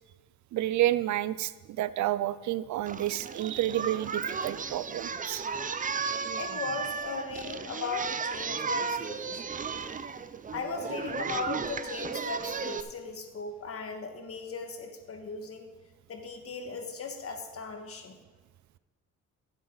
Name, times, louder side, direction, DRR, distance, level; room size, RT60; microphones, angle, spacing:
voice 1, 0.5-5.4, right 14 dB, 70° right, 16 dB, 0.5 m, -30 dB
Singing, 2.9-12.8, right 5 dB, 25° right, 0.6 m, -34 dB
voice 2, 6.4-9.4 10.5-15.7 16.1-18.2, left 4 dB, 50° left, 4 dB, 1.8 m, -37 dB
15.5 x 8.3 x 4.0 m, 1.2 s
cardioid pair, 90°, 30 cm